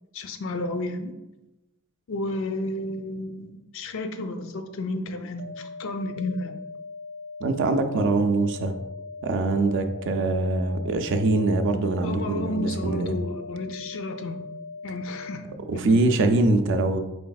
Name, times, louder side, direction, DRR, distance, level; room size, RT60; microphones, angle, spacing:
voice 1, 0.1-1.1 2.1-6.6 12.0-14.4 14.8-15.5 15.8-16.0, left 2 dB, 60° left, 7 dB, 0.4 m, -32 dB
sound 1, 5.4-15.4, left 3 dB, 85° right, 0.7 m, -40 dB
voice 2, 7.4-8.8 9.2-13.2 15.7-17.0, right 2 dB, 55° right, 7 dB, 0.3 m, -23 dB
4.1 x 3.3 x 2.3 m, 0.99 s
head